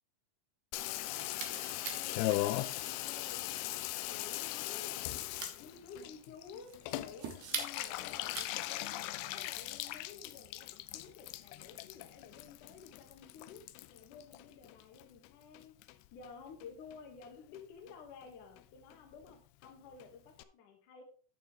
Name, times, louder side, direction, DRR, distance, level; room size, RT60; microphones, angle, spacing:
Water tap faucet / Bathtub (filling or washing), 0.7-15.3 15.5-16.3 16.6-16.7 16.9-17.0 17.2-17.6 17.9-18.0 18.2-18.3 18.6-18.7 18.9-19.0 19.2-19.3 19.6-19.7 20.0-20.1 20.4-20.5, left 16 dB, 85° left, 2.4 m, -39 dB
sound 1, 1.0-8.9, right 8 dB, 75° right, 3.0 m, -46 dB
voice 1, 1.4-2.2 2.6-3.8 4.1-13.6 13.9-21.0, left 5 dB, 60° left, 3 dB, 2.6 m, -53 dB
12.0 x 6.7 x 3.1 m, 0.39 s
omnidirectional pair, 5.0 m